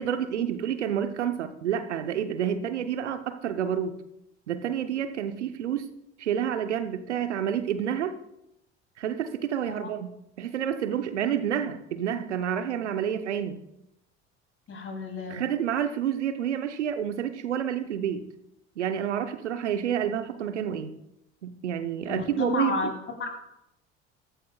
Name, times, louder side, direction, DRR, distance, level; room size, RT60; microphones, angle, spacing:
voice 1, 0.0-4.0 4.5-5.9 6.2-8.1 9.0-10.1 10.4-13.6 15.3-18.3 18.8-20.9 21.4-22.9, right 9 dB, 90° right, 10 dB, 0.8 m, -29 dB
voice 2, 14.7-15.5 22.0-22.9 23.2-23.3, left 3 dB, 35° left, 3 dB, 3.1 m, -31 dB
14.5 x 12.5 x 2.3 m, 0.83 s
hypercardioid pair, 65°, 34 cm